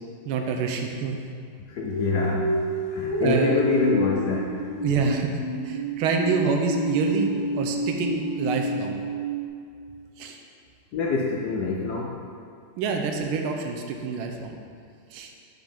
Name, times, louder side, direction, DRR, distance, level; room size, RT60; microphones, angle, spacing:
voice 1, 0.2-1.2 3.2-3.6 4.8-5.4 5.6-7.3 7.6-9.0 10.2-10.4 12.8-14.5 15.1-15.3, right 5 dB, 90° right, 3 dB, 1.5 m, -26 dB
voice 2, 1.7-2.5 2.9-4.6 10.9-12.2, left 4 dB, 75° left, -2 dB, 0.9 m, -25 dB
sound 1, 1.9-9.5, right 1 dB, 25° right, 0.5 m, -29 dB
6.1 x 5.2 x 5.1 m, 2.3 s
omnidirectional pair, 2.3 m